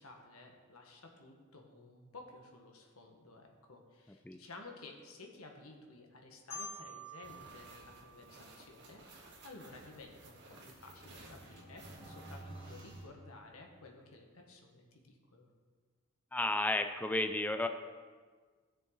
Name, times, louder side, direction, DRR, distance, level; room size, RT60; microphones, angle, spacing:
voice 1, 0.0-15.5, left 3 dB, 85° left, 2 dB, 1.6 m, -54 dB
Marimba xylophone, 6.5-9.3, equal, 65° left, 3.2 m, -49 dB
sound 1, 7.2-13.0, right 2 dB, 55° right, 1.8 m, -56 dB
sound 2, 10.4-14.1, right 1 dB, 20° right, 2.0 m, -53 dB
voice 2, 16.3-17.7, left 2 dB, 10° left, 7 dB, 0.4 m, -32 dB
16.0 x 6.6 x 4.1 m, 1.5 s
head